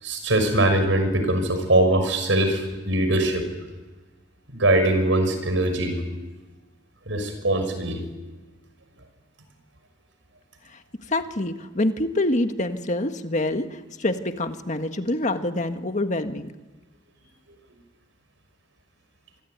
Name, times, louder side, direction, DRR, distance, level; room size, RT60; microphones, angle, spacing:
voice 1, 0.0-3.5 4.5-6.0 7.1-8.0, right 1 dB, 85° right, 8 dB, 6.0 m, -22 dB
voice 2, 11.1-16.5, left 1 dB, 40° left, 7 dB, 1.6 m, -26 dB
27.0 x 22.5 x 9.4 m, 1.2 s
head